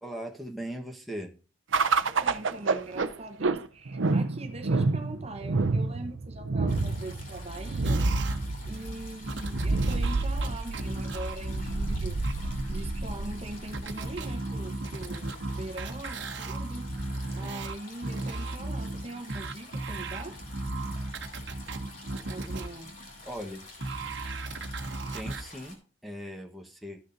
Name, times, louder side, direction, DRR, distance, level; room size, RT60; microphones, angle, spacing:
voice 1, 0.0-1.3 23.2-23.6 25.1-27.0, equal, ahead, 1.2 m, -39 dB
sound 1, 1.7-14.3, right 3 dB, 85° right, 0.7 m, -29 dB
voice 2, 2.0-8.0 8.6-12.2 12.7-16.9 17.4-20.4 22.3-23.0, right 2 dB, 30° right, 1.0 m, -42 dB
sound 2, 6.7-25.8, left 2 dB, 45° left, 2.9 m, -48 dB
sound 3, 7.8-23.4 23.8-25.4, right 2 dB, 65° right, 1.1 m, -36 dB
14.0 x 6.4 x 2.7 m
head